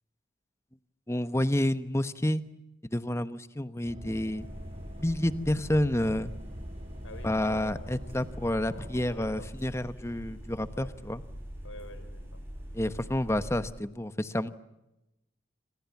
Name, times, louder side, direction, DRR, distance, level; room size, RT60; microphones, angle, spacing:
voice 1, 1.1-2.4 2.9-4.5 5.0-6.3 7.2-11.2 12.7-14.5, left 1 dB, 15° left, 12 dB, 1.0 m, -29 dB
sound 1, 3.8-9.5, equal, 30° right, 3.7 m, -44 dB
sound 2, 4.3-13.7, equal, 10° right, 7.5 m, -44 dB
voice 2, 7.0-9.5 10.7-10.9 11.6-12.4, left 2 dB, 90° left, 13 dB, 4.6 m, -48 dB
28.0 x 26.0 x 7.2 m, 0.94 s
head